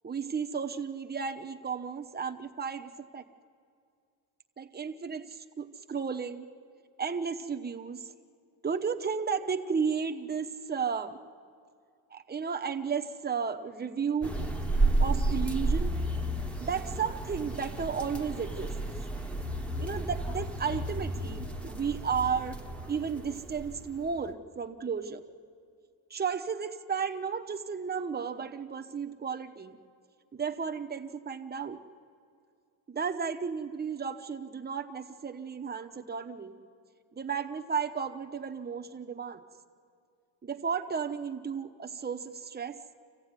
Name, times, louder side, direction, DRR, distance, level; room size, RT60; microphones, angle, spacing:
voice 1, 0.0-3.2 4.6-6.4 7.0-8.0 8.6-11.2 12.1-14.4 15.0-15.9 16.6-18.7 19.8-22.6 22.9-25.2 26.1-29.8 30.3-31.8 32.9-36.6 37.1-39.4 40.4-42.8, right 6 dB, 20° right, 5 dB, 0.9 m, -33 dB
sound 1, 14.2-24.3, right 2 dB, 5° left, 1.0 m, -32 dB
26.5 x 15.5 x 9.6 m, 2.3 s
cardioid pair, 165°, 48 cm